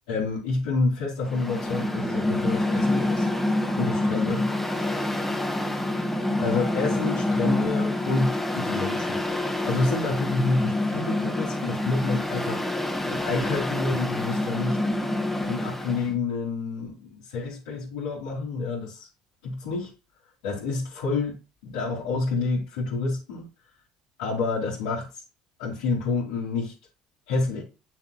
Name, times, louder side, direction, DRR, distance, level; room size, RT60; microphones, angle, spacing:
voice 1, 0.1-3.3 3.8-4.5 6.4-12.6 13.1-14.8 15.5-19.1 19.4-19.9 20.4-21.4 21.6-23.5 24.2-25.2 25.6-26.7 27.3-27.6, left 3 dB, 75° left, 3.3 m, -28 dB
Mechanical fan, 1.2-16.1, left 1 dB, 5° left, 1.6 m, -27 dB
8.4 x 7.0 x 2.4 m
hypercardioid pair, 70°, 3 cm